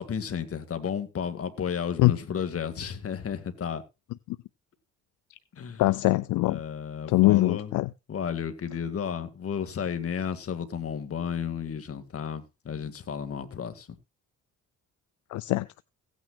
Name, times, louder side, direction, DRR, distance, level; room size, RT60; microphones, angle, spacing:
voice 1, 0.0-3.8 5.5-5.8 6.4-7.7 8.1-13.9, left 7 dB, 50° left, 1.9 m, -33 dB
voice 2, 5.8-6.6 7.1-7.9 15.3-15.8, left 18 dB, 80° left, 0.5 m, -22 dB
17.0 x 9.3 x 2.3 m
cardioid pair, 90°, 30 cm